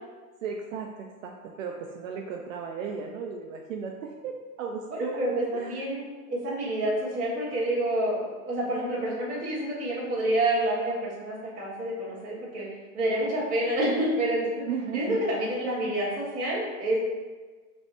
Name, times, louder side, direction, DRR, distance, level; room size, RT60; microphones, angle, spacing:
voice 1, 0.4-5.8 14.6-15.2, right 6 dB, 65° right, 1 dB, 0.5 m, -36 dB
voice 2, 4.9-12.7 12.9-14.6 14.9-17.0, right 1 dB, 20° right, -8 dB, 1.3 m, -28 dB
3.3 x 3.1 x 4.0 m, 1.4 s
hypercardioid pair, 155°, 43 cm